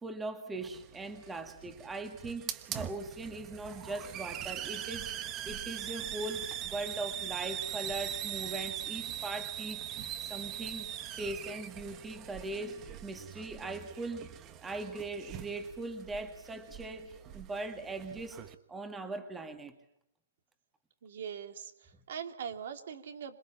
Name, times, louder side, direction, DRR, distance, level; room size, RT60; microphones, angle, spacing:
voice 1, 0.0-18.4 18.7-19.8, right 2 dB, 10° right, 7 dB, 1.9 m, -40 dB
Hiss, 0.6-18.5, right 11 dB, 25° right, 1.4 m, -41 dB
voice 2, 21.0-23.4, right 8 dB, 65° right, 7 dB, 3.0 m, -42 dB
27.0 x 21.5 x 7.4 m, 0.74 s
hypercardioid pair, 155°, 0 cm